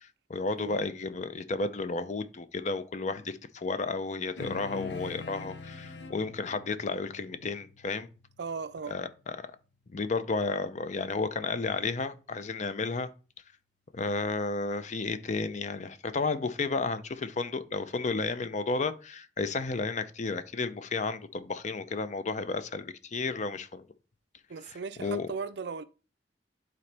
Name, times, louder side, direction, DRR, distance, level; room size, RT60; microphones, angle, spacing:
voice 1, 0.0-8.1 8.9-9.5 9.9-13.1 13.9-23.9 25.0-25.3, left 3 dB, 40° left, 0.6 m, -32 dB
sound 1, 4.4-9.1, left 3 dB, 85° left, 0.9 m, -44 dB
voice 2, 8.4-9.0 24.5-25.8, right 5 dB, 65° right, 0.4 m, -37 dB
11.5 x 4.0 x 3.4 m
head